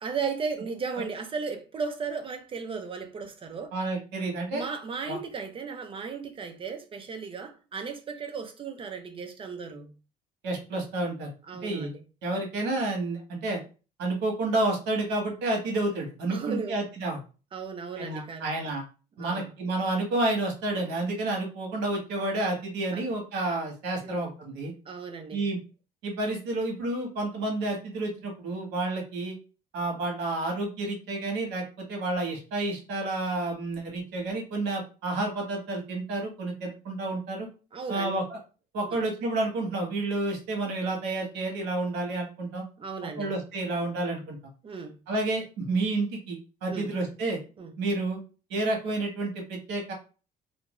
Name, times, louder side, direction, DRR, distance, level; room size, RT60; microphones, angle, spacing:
voice 1, 0.0-3.7 4.5-9.9 11.5-12.0 16.3-16.8 17.5-18.5 19.2-19.5 22.9-23.1 24.0-24.2 24.9-25.4 29.9-30.0 37.7-38.1 38.9-39.0 42.8-43.3 44.6-45.0 46.7-47.0 47.6-47.7, right 5 dB, 30° right, 0.5 m, -35 dB
voice 2, 3.7-4.6 5.1-5.2 10.4-11.3 11.6-11.9 12.2-13.6 14.0-17.2 18.0-18.8 19.2-24.7 25.3-25.6 26.0-29.4 29.7-31.6 31.9-37.5 37.9-38.4 38.7-42.6 43.2-44.4 45.1-47.4 47.8-48.2 48.5-49.9, right 2 dB, 85° right, 1.1 m, -30 dB
2.5 x 2.2 x 3.0 m
cardioid pair, 110°, 17 cm